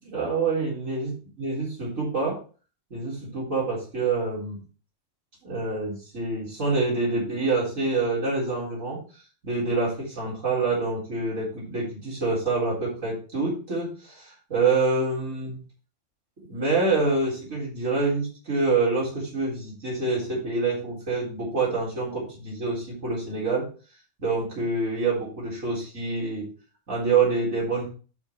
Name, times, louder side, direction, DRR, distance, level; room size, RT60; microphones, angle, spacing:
voice 1, 0.0-1.1 1.4-2.4 2.9-4.6 5.4-9.0 9.4-15.6 16.5-23.7 24.2-26.5 26.9-27.9, right 3 dB, 90° right, -7 dB, 4.4 m, -26 dB
11.5 x 4.1 x 4.5 m, 0.37 s
omnidirectional pair, 1.3 m